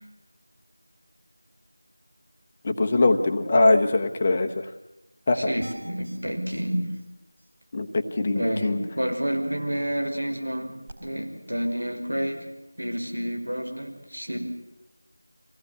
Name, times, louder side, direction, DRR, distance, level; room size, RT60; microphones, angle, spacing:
voice 1, 2.6-4.7 5.3-5.5 7.7-8.8, left 2 dB, 20° left, 5 dB, 0.9 m, -22 dB
voice 2, 5.3-6.9 8.2-12.5 12.8-14.4, equal, 80° right, 3 dB, 5.5 m, -29 dB
sound 1, 5.6-6.2 6.5-6.6 6.9-7.0 7.4-7.5 10.9-11.0, right 1 dB, 20° right, 2.5 m, -43 dB
24.5 x 17.0 x 8.7 m, 0.97 s
figure-of-eight pair, 175°, 0 cm